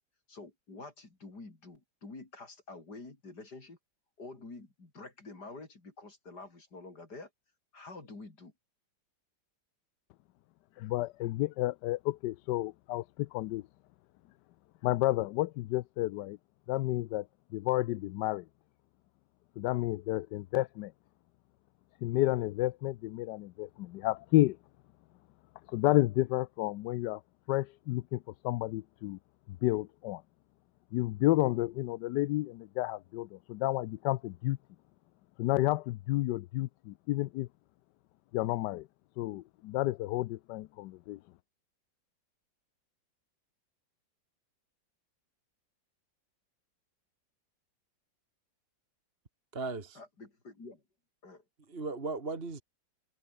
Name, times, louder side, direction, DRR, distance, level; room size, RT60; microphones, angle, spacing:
voice 1, 0.3-3.8 4.2-7.3 7.7-8.5 50.0-50.8 51.2-51.4, left 3 dB, 55° left, 5.2 m, -48 dB
voice 2, 10.8-13.6 14.8-16.4 16.7-17.3 17.5-18.4 19.6-20.9 22.0-24.6 25.7-27.2 27.5-29.2 29.6-30.2 30.9-34.6 35.4-37.5 38.3-38.9 39.2-41.2, left 17 dB, 75° left, 1.1 m, -31 dB
voice 3, 49.5-50.0 51.7-52.6, right 3 dB, 30° right, 2.3 m, -36 dB
omnidirectional pair, 2.0 m